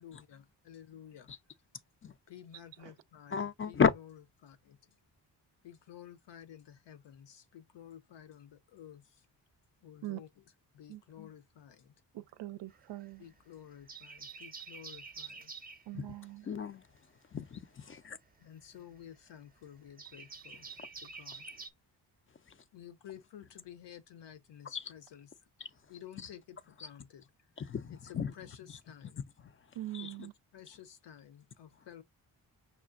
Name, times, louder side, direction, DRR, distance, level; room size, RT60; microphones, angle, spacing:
voice 1, 0.0-1.3 2.3-5.0 5.6-9.3 9.8-10.3 10.7-11.9 13.2-15.5 16.4-16.5 18.4-20.7 21.0-21.5 22.7-25.3 25.9-27.3 27.9-29.3 30.0-30.1 30.5-32.0, left 10 dB, 70° left, 0.8 m, -52 dB
voice 2, 3.3-3.9 15.9-16.1 16.5-16.8 17.3-18.2 24.7-24.9 27.6-28.3 29.9-30.1, left 6 dB, 30° left, 0.4 m, -32 dB
voice 3, 12.1-13.2 15.9-16.5 29.7-30.3, right 16 dB, 70° right, 0.5 m, -42 dB
sound 1, 12.7-13.4 13.7-15.9 17.5-21.7, right 4 dB, 20° right, 0.5 m, -48 dB
5.7 x 2.2 x 2.5 m
supercardioid pair, 55°, 45 cm